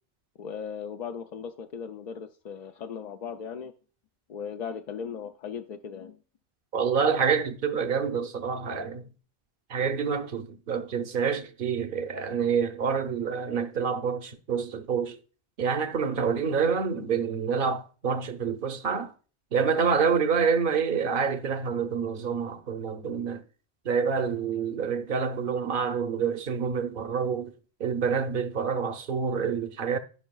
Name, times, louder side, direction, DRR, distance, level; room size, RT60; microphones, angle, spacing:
voice 1, 0.4-3.7 4.3-6.2, left 7 dB, 55° left, 0.5 m, -37 dB
voice 2, 6.7-9.1 9.7-15.2 15.6-19.1 19.5-23.4 23.8-27.5 27.8-30.0, right 6 dB, 60° right, 0.9 m, -27 dB
13.0 x 5.5 x 2.3 m
omnidirectional pair, 1.1 m